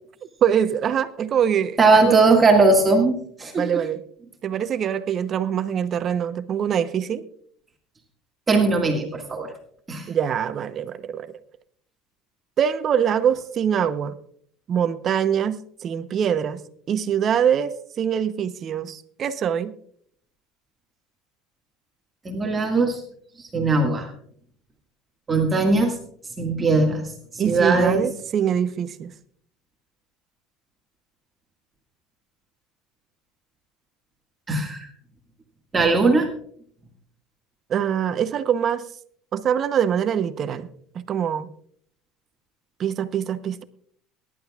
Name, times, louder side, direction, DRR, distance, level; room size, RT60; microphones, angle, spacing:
voice 1, 0.4-2.3 3.6-4.0 4.4-7.2 10.1-11.3 12.6-14.2 14.7-16.6 16.9-19.7 27.4-29.1 37.7-38.8 39.3-40.7 40.9-41.5 42.8-43.6, right 8 dB, 40° right, 0.8 m, -24 dB
voice 2, 1.8-3.7 8.5-9.5 9.9-10.1 22.3-23.0 23.4-24.1 25.3-25.9 26.4-27.0 27.3-28.1 34.5-34.9 35.7-36.3, right 3 dB, 20° right, 1.9 m, -19 dB
22.5 x 11.0 x 2.4 m
supercardioid pair, 115°, 0 cm